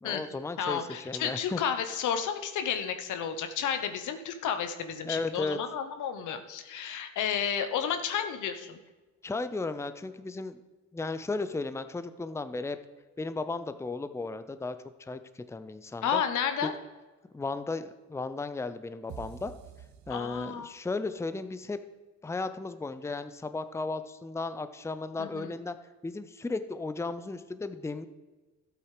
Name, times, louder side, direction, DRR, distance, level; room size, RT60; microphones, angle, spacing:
voice 1, 0.0-1.6 5.0-5.6 9.2-10.6 10.9-12.8 13.2-16.2 16.6-16.7 17.3-19.5 20.1-21.8 22.2-25.8 26.0-28.1, left 3 dB, 10° left, 11 dB, 0.6 m, -35 dB
voice 2, 0.6-8.8 16.0-16.7 20.1-20.7 25.2-25.5, left 8 dB, 80° left, 8 dB, 1.1 m, -32 dB
sound 1, 19.1-20.9, right 9 dB, 70° right, 1.0 m, -47 dB
13.0 x 8.1 x 5.0 m, 1.3 s
cardioid pair, 90°, 30 cm